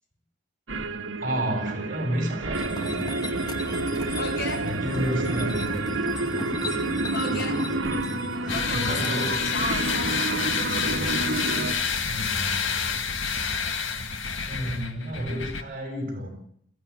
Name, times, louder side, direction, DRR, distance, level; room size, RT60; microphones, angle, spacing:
sound 1, 0.7-11.7, right 2 dB, 80° right, 1.9 m, -29 dB
voice 1, 1.2-2.8 4.6-6.1 8.7-9.5 10.7-11.4 12.0-12.7 14.5-16.3, equal, 45° right, 7.3 m, -31 dB
sound 2, 2.5-9.3, left 1 dB, 20° left, 2.3 m, -37 dB
voice 2, 4.1-4.7 6.6-6.8 7.1-7.6 8.3-10.1, left 2 dB, 55° left, 4.1 m, -34 dB
sound 3, 8.5-15.6, left 6 dB, 80° left, 2.1 m, -28 dB
22.5 x 16.0 x 9.9 m
head